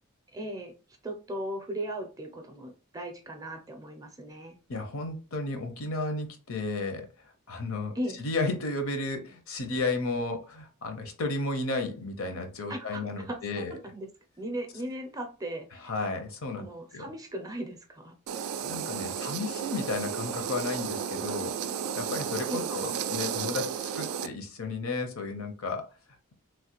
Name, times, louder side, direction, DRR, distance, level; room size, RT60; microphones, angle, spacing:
voice 1, 0.3-0.7 1.0-4.6 7.9-8.2 12.7-14.1 14.4-15.9 16.5-18.1 22.5-22.7, right 1 dB, 15° right, 0.4 m, -37 dB
voice 2, 4.7-7.1 7.5-13.7 15.8-16.7 16.9-17.1 18.6-21.6 22.0-25.9, left 3 dB, 70° left, 0.7 m, -33 dB
sound 1, 18.3-24.3, right 7 dB, 85° right, 0.3 m, -33 dB
3.2 x 2.1 x 2.9 m
head